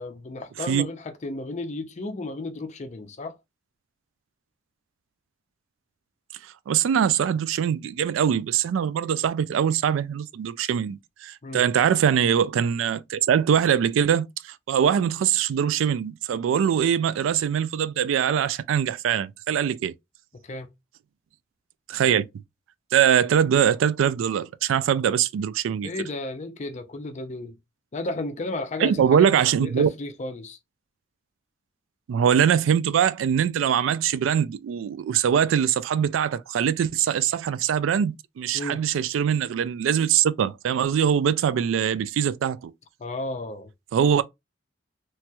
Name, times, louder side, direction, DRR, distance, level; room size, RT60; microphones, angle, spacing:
voice 1, 0.0-3.4 11.4-11.7 20.3-20.7 25.8-27.6 27.9-30.6 38.5-38.8 43.0-43.7, left 2 dB, 40° left, 0.5 m, -33 dB
voice 2, 6.7-19.9 21.9-22.3 22.9-25.9 28.8-29.9 32.1-42.7 43.9-44.2, right 8 dB, 90° right, 0.3 m, -22 dB
3.0 x 2.9 x 2.2 m
head